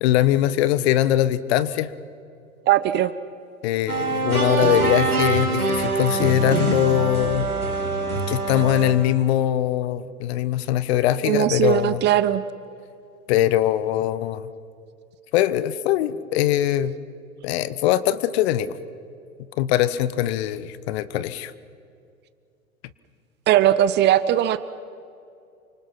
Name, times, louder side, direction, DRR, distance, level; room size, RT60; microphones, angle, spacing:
voice 1, 0.0-1.9 3.6-7.5 8.3-12.0 13.3-14.5 15.3-16.9 17.4-18.7 19.6-21.5, left 12 dB, 45° left, 16 dB, 1.1 m, -22 dB
voice 2, 2.7-3.1 11.3-12.4 23.5-24.6, right 12 dB, 25° right, 15 dB, 0.7 m, -19 dB
sound 1, 3.9-8.9, right 3 dB, 90° right, 3.4 m, -24 dB
28.5 x 25.5 x 6.0 m, 2.4 s
figure-of-eight pair, 95°, 43 cm